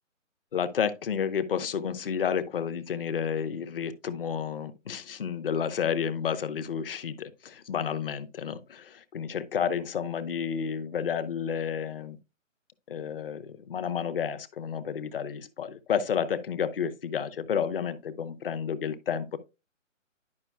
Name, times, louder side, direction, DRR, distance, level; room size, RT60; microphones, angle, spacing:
voice 1, 0.5-12.2 12.9-19.4, left 7 dB, 45° left, 0.8 m, -31 dB
10.5 x 5.4 x 2.2 m
figure-of-eight pair, 150°, 39 cm